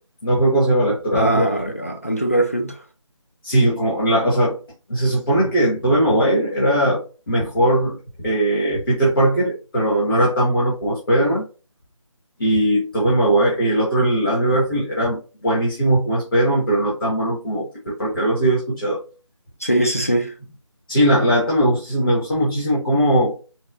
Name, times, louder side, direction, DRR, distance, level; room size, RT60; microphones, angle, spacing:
voice 1, 0.2-1.4 3.4-4.6 4.9-8.0 8.2-11.4 12.4-19.0 19.8-19.9 20.9-23.4, right 1 dB, 45° left, 1.1 m, -19 dB
voice 2, 1.1-2.8 19.6-20.3, right 1 dB, 30° left, 0.3 m, -21 dB
4.1 x 2.0 x 2.3 m
figure-of-eight pair, 170°, 17 cm